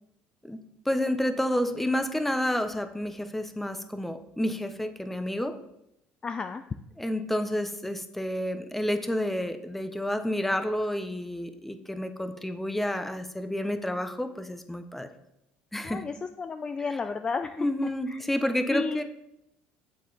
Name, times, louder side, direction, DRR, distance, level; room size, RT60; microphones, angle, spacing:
voice 1, 0.8-5.6 7.0-15.1 15.7-16.0 17.6-19.0, left 1 dB, 5° left, 8 dB, 0.7 m, -29 dB
voice 2, 6.2-6.8 15.8-17.7 18.1-18.2 18.7-19.0, left 4 dB, 25° left, 8 dB, 0.4 m, -32 dB
7.3 x 6.9 x 3.9 m, 0.82 s
cardioid pair, 110°, 4 cm